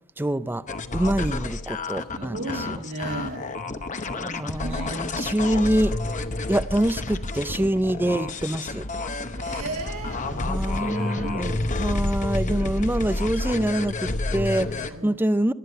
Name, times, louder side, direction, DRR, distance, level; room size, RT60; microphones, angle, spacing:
voice 1, 0.2-0.6 0.9-2.4 4.2-5.9 6.5-8.9 10.3-15.5, right 1 dB, 10° right, 14 dB, 0.5 m, -25 dB
sound 1, 0.7-14.9, left 2 dB, 35° left, 0.9 m, -29 dB
voice 2, 2.2-3.5 4.5-5.4 9.3-11.4 14.9-15.2, right 2 dB, 65° right, 0 dB, 2.2 m, -35 dB
19.0 x 12.5 x 5.6 m, 0.78 s
head